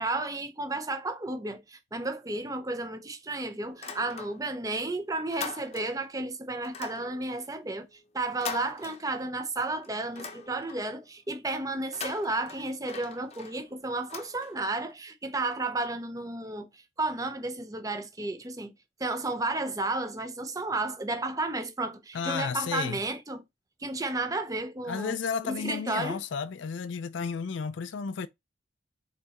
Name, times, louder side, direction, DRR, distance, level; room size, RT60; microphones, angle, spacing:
voice 1, 0.0-7.9 8.1-18.7 19.0-23.4 23.8-25.2 25.4-26.2, right 2 dB, 20° right, 0.6 m, -32 dB
sound 1, 3.7-4.7 5.0-6.1 6.6-9.5 9.8-11.0 11.8-14.9, left 5 dB, 35° left, 0.7 m, -42 dB
voice 2, 22.1-23.0 24.9-28.3, left 6 dB, 75° left, 0.4 m, -32 dB
4.4 x 4.1 x 2.9 m
head